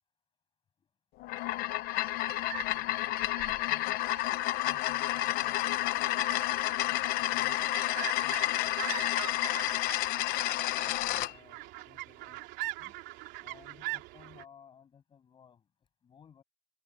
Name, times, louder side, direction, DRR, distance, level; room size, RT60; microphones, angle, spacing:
sound 1, 1.2-11.3, left 16 dB, 60° left, 0.9 m, -30 dB
sound 2, 2.1-14.5, right 19 dB, 80° right, 3.0 m, -43 dB
voice 1, 2.7-4.0 4.6-6.3 6.9-10.3 10.8-11.6 11.8-12.4 12.8-12.9 13.4-15.7 16.0-16.4, left 7 dB, 30° left, 7.9 m, -59 dB
cardioid pair, 170°, 18 cm